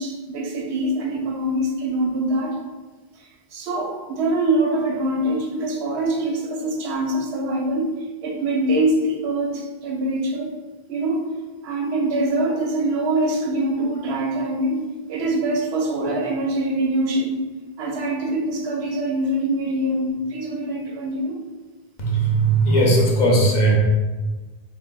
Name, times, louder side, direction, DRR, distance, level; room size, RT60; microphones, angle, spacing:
voice 1, 0.0-2.6 3.1-7.9 8.2-10.5 10.9-11.2 11.6-17.4 17.8-21.4 22.7-22.8, right 1 dB, 85° right, 0 dB, 0.9 m, -24 dB
voice 2, 22.0-23.8, right 2 dB, 50° left, -2 dB, 0.7 m, -18 dB
3.5 x 2.5 x 2.2 m, 1.3 s
omnidirectional pair, 1.1 m